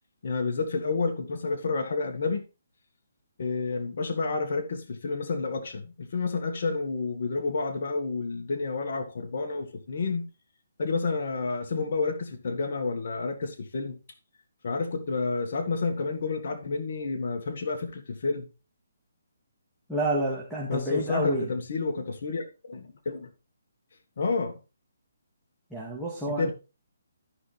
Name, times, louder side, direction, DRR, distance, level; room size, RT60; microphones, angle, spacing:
voice 1, 0.2-2.4 3.4-10.3 10.8-14.0 14.6-18.5 20.7-23.3 24.2-24.6 26.3-26.5, left 4 dB, 55° left, 1.7 m, -30 dB
voice 2, 19.9-21.5 25.7-26.5, right 1 dB, ahead, 2.1 m, -29 dB
13.0 x 5.6 x 3.4 m
hypercardioid pair, 155°, 0 cm